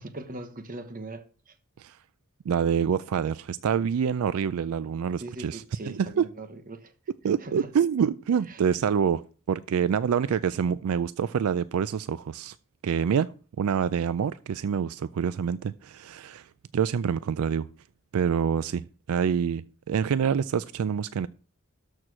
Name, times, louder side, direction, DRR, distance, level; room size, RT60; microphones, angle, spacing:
voice 1, 0.0-1.6 5.2-6.9 7.4-7.7 8.5-8.6, right 2 dB, 40° right, 1.1 m, -40 dB
voice 2, 2.5-6.3 7.2-12.6 12.8-13.3 13.6-17.7 18.1-21.3, right 7 dB, 75° right, 0.3 m, -26 dB
13.0 x 4.5 x 6.2 m
head